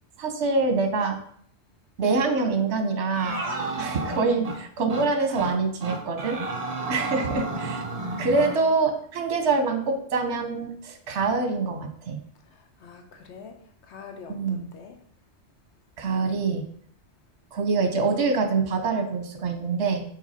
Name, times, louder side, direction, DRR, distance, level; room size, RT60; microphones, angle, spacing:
voice 1, 0.2-1.2 2.0-3.4 3.8-6.4 6.9-7.8 8.2-12.2 14.3-14.7 16.0-16.6 17.5-20.0, right 4 dB, 75° right, 5 dB, 1.2 m, -25 dB
sound 1, 3.1-4.6 4.9-5.1 5.3-5.5 5.8-8.6, right 2 dB, 40° right, 0.8 m, -31 dB
voice 2, 4.2-4.5 7.2-7.5 12.5-13.6 13.8-15.0, left 5 dB, 75° left, 5 dB, 1.0 m, -44 dB
5.7 x 4.3 x 4.2 m, 0.63 s
omnidirectional pair, 1.2 m